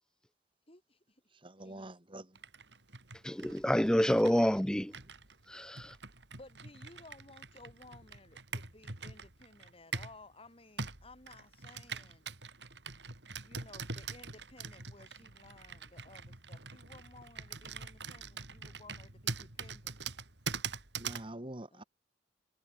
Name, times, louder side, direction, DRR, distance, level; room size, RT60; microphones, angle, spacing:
voice 1, 0.7-1.2 1.6-1.9 6.3-12.3 13.4-20.0 21.7-21.9, left 2 dB, 30° left, 5.2 m, -57 dB
voice 2, 1.3-2.4 21.0-21.8, right 1 dB, 30° right, 2.1 m, -46 dB
Computer keyboard, 2.4-10.2 10.8-21.3, right 5 dB, 65° right, 4.4 m, -44 dB
voice 3, 3.2-4.9 5.5-5.9, equal, 5° left, 0.6 m, -28 dB
head